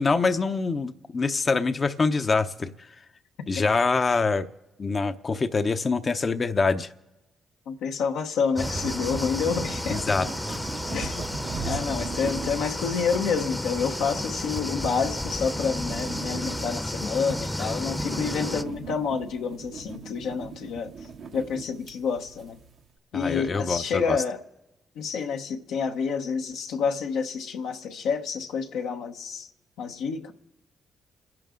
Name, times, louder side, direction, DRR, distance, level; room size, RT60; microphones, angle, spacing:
voice 1, 0.0-2.7 3.5-4.5 4.8-6.9 9.9-10.6 10.9-11.2 11.6-11.7 23.1-24.2, left 4 dB, 40° left, 0.7 m, -25 dB
voice 2, 7.7-10.2 10.9-11.2 11.6-20.9 21.3-22.6 23.1-24.4 25.0-29.5 29.8-30.3, left 6 dB, 85° left, 1.0 m, -28 dB
sound 1, 8.6-18.6, left 1 dB, 10° left, 0.8 m, -32 dB
sound 2, 8.6-22.8, right 5 dB, 70° right, 1.2 m, -40 dB
28.5 x 10.5 x 3.8 m
supercardioid pair, 50°, 0 cm